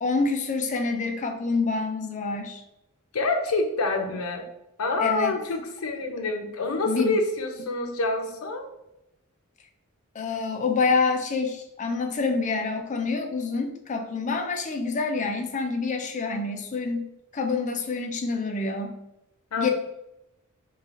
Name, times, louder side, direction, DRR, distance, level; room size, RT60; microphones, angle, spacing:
voice 1, 0.0-2.6 5.0-5.3 6.9-7.2 10.1-17.1 17.3-19.0 19.6-19.7, left 4 dB, 35° left, 5 dB, 0.4 m, -27 dB
voice 2, 3.1-4.5 4.8-8.7 19.5-19.7, left 2 dB, 85° left, 4 dB, 0.6 m, -27 dB
3.2 x 2.4 x 3.6 m, 0.86 s
head